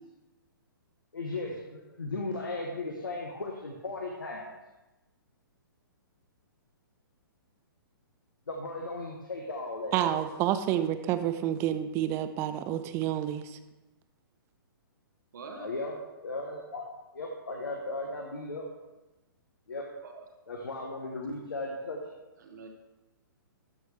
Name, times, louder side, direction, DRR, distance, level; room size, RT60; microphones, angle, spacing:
voice 1, 1.1-4.5 8.5-10.3 15.5-16.9 17.1-18.7 19.7-19.9 20.5-22.0, left 2 dB, 70° left, 1 dB, 1.3 m, -36 dB
voice 2, 9.9-13.6, right 11 dB, 20° right, 10 dB, 0.5 m, -29 dB
voice 3, 15.3-15.7 20.0-20.2 21.0-21.2 22.4-22.7, right 4 dB, 55° right, 3 dB, 1.1 m, -45 dB
13.0 x 6.3 x 3.3 m, 1.1 s
figure-of-eight pair, 120°, 12 cm